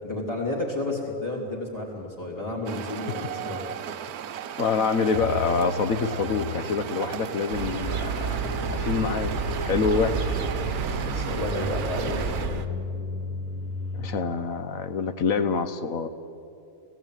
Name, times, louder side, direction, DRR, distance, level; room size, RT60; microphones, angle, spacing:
voice 1, 0.0-3.7 4.7-4.9 11.0-12.3, left 2 dB, 10° left, -3 dB, 2.9 m, -31 dB
sound 1, 2.7-12.5, right 9 dB, 75° right, 1.2 m, -36 dB
voice 2, 4.6-8.4 8.7-9.3 9.6-10.4 13.9-16.1, left 5 dB, 60° left, 10 dB, 1.3 m, -26 dB
sound 2, 5.1-14.3, left 5 dB, 80° left, 1.5 m, -36 dB
sound 3, 7.5-12.7, right 5 dB, 50° right, 1.3 m, -30 dB
18.5 x 16.0 x 9.1 m, 2.6 s
omnidirectional pair, 1.7 m